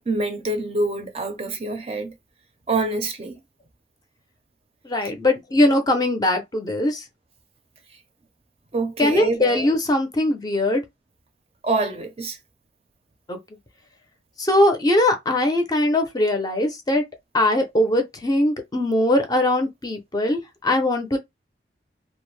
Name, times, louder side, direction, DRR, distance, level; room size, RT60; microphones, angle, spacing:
voice 1, 0.1-2.1 2.7-3.4 8.7-9.4 11.6-12.4, right 2 dB, 35° right, 0.5 m, -26 dB
voice 2, 4.8-7.0 9.0-10.8 13.3-13.4 14.4-17.0 17.3-21.2, left 1 dB, 20° left, 0.5 m, -21 dB
2.4 x 2.0 x 3.1 m
head